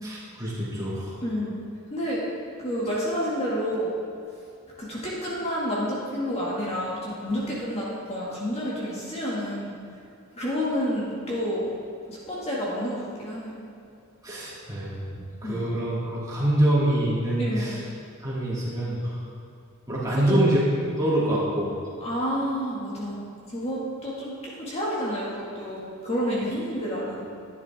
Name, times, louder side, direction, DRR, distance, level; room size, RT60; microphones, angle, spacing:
voice 1, 0.0-1.1 14.2-15.0 15.4-17.8 18.2-19.2 19.9-20.6 21.0-21.7, right 1 dB, 15° right, -9 dB, 2.9 m, -25 dB
voice 2, 1.2-1.6 1.9-2.2 2.6-3.9 4.8-9.7 10.4-11.7 12.1-13.6 15.1-15.6 17.4-17.8 20.1-20.4 22.0-27.3, equal, 30° left, -6 dB, 2.0 m, -29 dB
12.0 x 9.7 x 3.6 m, 2.5 s
head